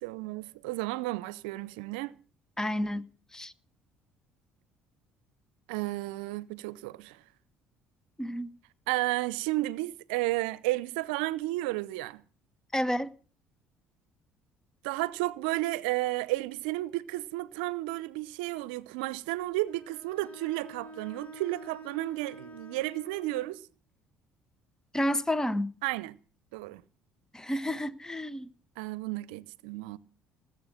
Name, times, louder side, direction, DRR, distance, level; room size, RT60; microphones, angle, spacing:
voice 1, 0.0-2.2 5.7-7.2 8.9-12.2 14.8-23.6 25.8-26.2 26.5-26.8 28.8-30.0, right 18 dB, 80° right, 0.7 m, -32 dB
voice 2, 2.6-3.1 3.3-3.5 8.2-8.5 12.7-13.1 24.9-25.7 27.3-28.5, equal, 10° left, 1.4 m, -30 dB
Bowed string instrument, 19.7-23.6, right 1 dB, 25° left, 4.8 m, -48 dB
19.5 x 7.8 x 7.6 m
hypercardioid pair, 60°, 5 cm